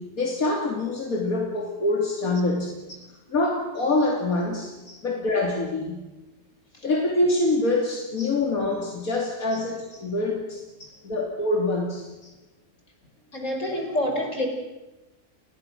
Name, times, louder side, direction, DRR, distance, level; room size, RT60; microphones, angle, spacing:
voice 1, 0.0-2.8 3.3-4.7 5.0-6.1 6.8-10.6 11.0-12.1, left 2 dB, 80° left, 1 dB, 3.3 m, -25 dB
voice 2, 13.3-14.5, left 1 dB, 60° left, 3 dB, 5.4 m, -29 dB
30.0 x 21.5 x 6.3 m, 1.0 s
omnidirectional pair, 1.5 m